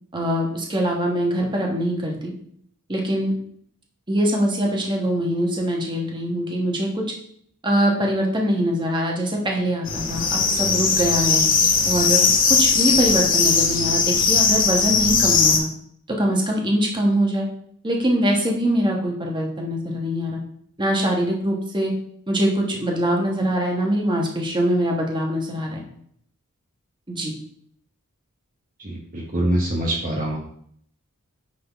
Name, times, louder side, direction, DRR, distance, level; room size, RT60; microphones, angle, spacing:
voice 1, 0.1-2.3 2.9-3.3 4.1-7.0 7.6-11.4 11.8-15.7 16.2-17.5 17.8-20.4 20.8-21.9 22.3-25.8 27.1-27.3, equal, 20° right, 0 dB, 1.3 m, -23 dB
sound 1, 9.9-15.6, left 5 dB, 40° left, 0.9 m, -19 dB
voice 2, 28.8-30.4, right 1 dB, 40° right, -2 dB, 1.0 m, -24 dB
9.5 x 3.8 x 3.5 m, 0.66 s
head